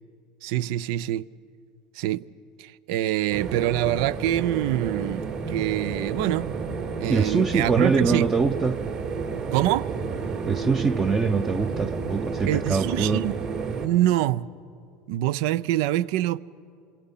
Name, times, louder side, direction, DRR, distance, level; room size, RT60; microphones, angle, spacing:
voice 1, 0.4-1.3 1.9-2.3 2.6-6.6 7.0-8.3 9.5-9.9 12.5-13.3 13.8-14.5 15.1-16.4, right 14 dB, 75° right, 0.5 m, -25 dB
sound 1, 3.3-13.9, right 5 dB, 50° right, 3.5 m, -31 dB
voice 2, 7.1-8.8 10.5-13.2, right 4 dB, 20° right, 0.7 m, -24 dB
27.0 x 22.5 x 5.7 m
supercardioid pair, 115°, 2 cm